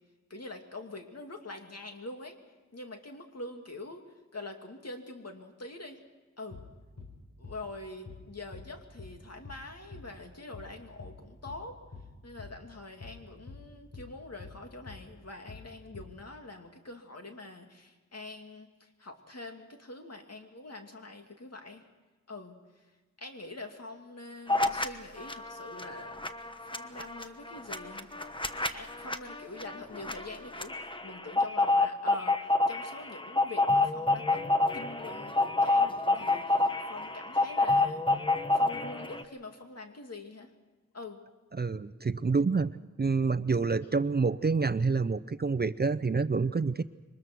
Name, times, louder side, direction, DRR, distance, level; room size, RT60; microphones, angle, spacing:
voice 1, 0.3-2.4 2.7-4.1 4.3-6.0 6.4-6.6 7.4-11.8 12.2-21.8 22.3-22.9 23.2-26.2 26.6-28.1 28.7-32.4 32.7-38.2 38.5-40.5 40.9-41.2, left 2 dB, 55° left, 4 dB, 2.6 m, -45 dB
sound 1, 6.5-6.7 7.0-7.2 7.4-7.6 8.1-8.3 8.5-8.7 9.0-9.2 9.4-9.6 9.9-10.1 10.5-10.7 11.0-11.2 11.5-11.7 11.9-12.1 12.4-12.6 13.0-13.2 13.5-13.7 13.9-14.1 14.4-14.6 14.9-15.1 15.5-15.7 15.9-16.1, left 4 dB, 85° left, 4.0 m, -46 dB
sound 2, 24.5-24.9 25.2-39.2, left 2 dB, 15° left, 1.2 m, -28 dB
voice 2, 41.5-46.8, right 4 dB, 35° right, 14 dB, 0.6 m, -28 dB
23.5 x 20.5 x 6.2 m, 1.3 s
wide cardioid pair, 70°, 30 cm